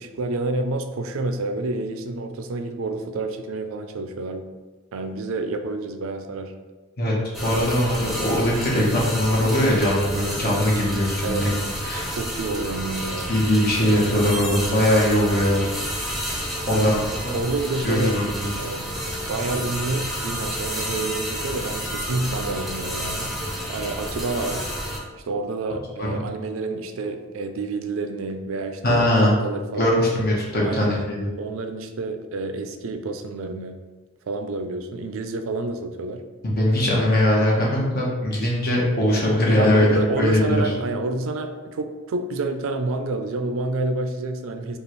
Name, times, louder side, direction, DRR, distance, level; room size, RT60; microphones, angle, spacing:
voice 1, 0.0-4.5 4.9-6.5 11.2-11.4 12.1-13.3 16.7-16.9 17.3-18.1 18.6-18.9 19.3-24.7 25.3-30.0 30.6-31.0 31.4-33.8 34.3-36.2 39.5-44.8, right 3 dB, 80° right, 7 dB, 0.4 m, -28 dB
sound 1, 7.3-25.0, equal, ahead, 0.8 m, -30 dB
voice 2, 7.4-12.1 13.3-15.6 16.7-17.0 17.8-18.5 26.0-26.2 28.8-29.3 29.8-31.3 36.4-40.6, left 1 dB, 50° left, -4 dB, 1.1 m, -21 dB
5.3 x 2.4 x 3.1 m, 1.3 s
head